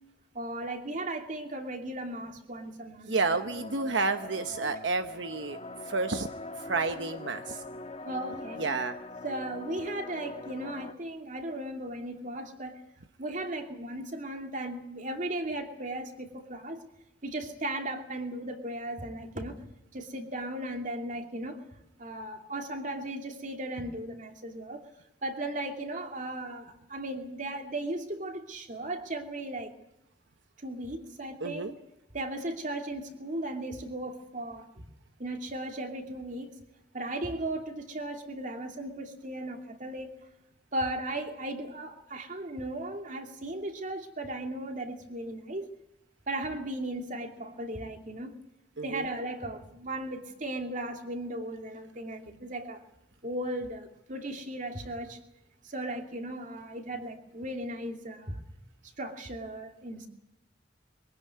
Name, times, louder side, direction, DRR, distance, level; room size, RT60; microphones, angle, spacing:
voice 1, 0.3-3.2 8.1-8.6 9.2-12.8 13.2-16.8 17.2-19.6 19.9-21.6 22.0-24.8 25.2-29.7 30.6-31.7 32.1-34.9 35.2-36.5 36.9-40.1 40.7-45.7 46.3-48.3 48.8-52.8 53.2-55.2 55.6-58.4 59.0-60.1, right 1 dB, 45° right, 4 dB, 2.6 m, -36 dB
voice 2, 3.1-5.6 5.8-6.3 6.5-7.6 8.6-9.0 31.4-31.7 48.8-49.0, right 3 dB, 80° right, 8 dB, 1.0 m, -30 dB
sound 1, 3.3-10.9, left 2 dB, 35° left, 1.2 m, -42 dB
23.5 x 16.0 x 9.6 m, 0.86 s
head